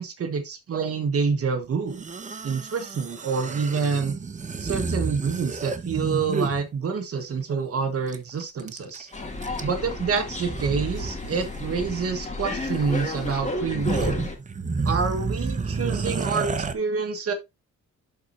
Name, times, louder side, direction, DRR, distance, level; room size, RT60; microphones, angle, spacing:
voice 1, 0.0-2.0 2.4-4.1 4.6-9.1 9.6-14.2 14.8-17.3, right 5 dB, 50° right, 1.5 m, -27 dB
sound 1, 1.9-6.6 8.1-8.2 8.4-9.0 9.4-9.9 10.4-11.2 11.4-11.6 12.7-12.8 13.3-13.4 13.7-16.7, right 4 dB, 25° right, 0.9 m, -30 dB
sound 2, 9.1-14.4, left 2 dB, 25° left, 2.4 m, -32 dB
11.5 x 4.4 x 2.6 m
cardioid pair, 90°, 30 cm